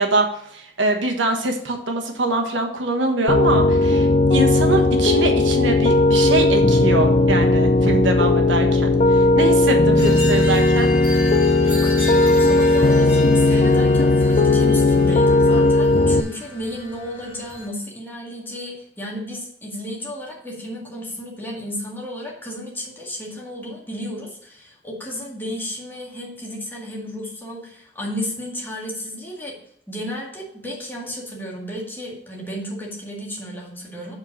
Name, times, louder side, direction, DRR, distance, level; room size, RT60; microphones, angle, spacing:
voice 1, 0.0-10.9, right 2 dB, 80° right, 3 dB, 1.3 m, -23 dB
Piano, 3.3-16.2, left 2 dB, 35° left, 0.4 m, -16 dB
sound 1, 10.0-17.7, left 3 dB, 15° right, 3.5 m, -34 dB
voice 2, 11.6-29.6 29.9-34.2, equal, 10° left, -4 dB, 2.0 m, -33 dB
7.5 x 4.7 x 6.7 m, 0.70 s
head